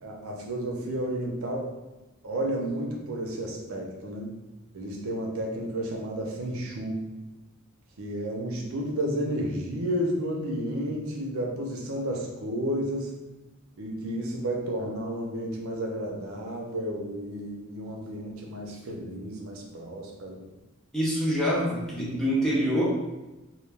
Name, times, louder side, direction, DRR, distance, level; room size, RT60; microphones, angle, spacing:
voice 1, 0.0-1.7 2.2-4.3 4.7-7.0 8.0-13.1 13.8-20.4, right 1 dB, 85° right, -1 dB, 0.6 m, -32 dB
voice 2, 20.9-22.8, equal, ahead, -6 dB, 0.6 m, -25 dB
2.2 x 2.2 x 3.2 m, 1.1 s
head